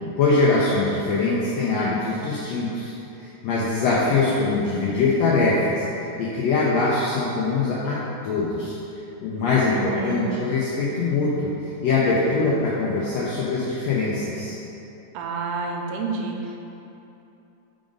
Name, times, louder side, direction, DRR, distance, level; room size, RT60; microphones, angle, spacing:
voice 1, 0.2-2.9 3.2-5.8 6.2-8.0 8.2-8.8 9.2-14.6, left 3 dB, 80° left, -6 dB, 1.5 m, -22 dB
voice 2, 9.7-10.3 15.1-16.6, right 3 dB, 85° right, 2 dB, 2.1 m, -29 dB
4.9 x 3.9 x 5.0 m, 2.9 s
omnidirectional pair, 3.7 m